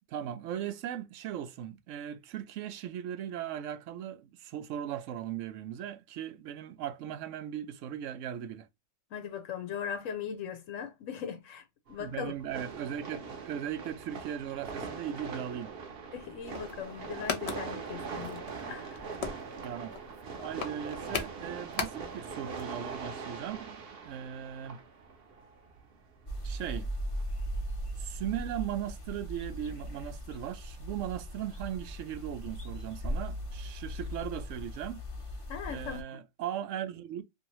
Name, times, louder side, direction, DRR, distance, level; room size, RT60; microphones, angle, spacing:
voice 1, 0.1-8.7 12.0-15.7 19.6-20.0 20.4-24.8 26.4-26.9 28.0-35.0 35.7-37.2, right 10 dB, 80° right, 0.9 m, -38 dB
voice 2, 9.1-11.6 11.9-12.3 16.1-19.0 35.5-36.2, left 7 dB, 90° left, 1.0 m, -39 dB
sound 1, 11.9-27.2, right 5 dB, 55° right, 0.9 m, -42 dB
sound 2, 16.4-22.3 22.6-22.7 22.9-23.0, left 6 dB, 60° left, 1.0 m, -38 dB
sound 3, 26.3-36.0, equal, 30° left, 0.8 m, -38 dB
2.7 x 2.7 x 2.9 m
omnidirectional pair, 1.3 m